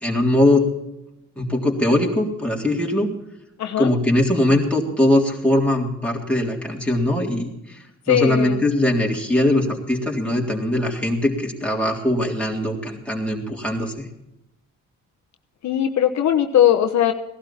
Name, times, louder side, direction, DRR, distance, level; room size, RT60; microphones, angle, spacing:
voice 1, 0.0-0.7 1.4-3.1 3.8-7.8 8.1-14.1, left 1 dB, 5° left, -2 dB, 3.6 m, -21 dB
voice 2, 3.6-3.9 8.1-8.6 15.6-17.1, left 10 dB, 65° left, 4 dB, 1.1 m, -19 dB
17.5 x 12.0 x 4.4 m, 0.90 s
cardioid pair, 90°, 30 cm